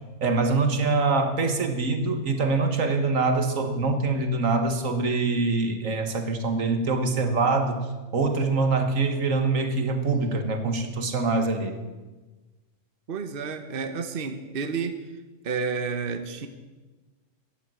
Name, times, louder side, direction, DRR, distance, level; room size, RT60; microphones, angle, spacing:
voice 1, 0.2-7.8 8.1-11.8, right 3 dB, 85° right, 7 dB, 1.9 m, -24 dB
voice 2, 13.1-15.0 15.4-16.5, right 5 dB, 45° right, 8 dB, 1.2 m, -30 dB
15.0 x 10.5 x 7.6 m, 1.2 s
omnidirectional pair, 1.3 m